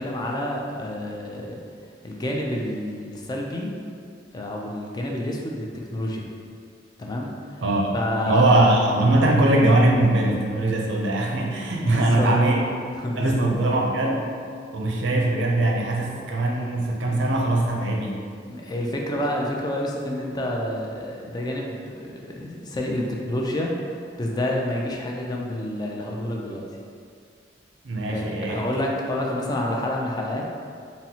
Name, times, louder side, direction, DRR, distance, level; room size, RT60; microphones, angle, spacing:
voice 1, 0.0-1.6 2.0-3.7 4.3-6.3 7.0-7.6 7.9-8.5 11.8-12.3 13.0-13.5 18.5-26.6 28.1-30.4, left 1 dB, 20° left, -1 dB, 0.3 m, -29 dB
voice 2, 8.2-12.6 13.2-14.3 14.7-18.2 27.8-28.6, right 2 dB, 80° right, -1 dB, 0.5 m, -21 dB
3.9 x 2.0 x 2.8 m, 2.2 s
head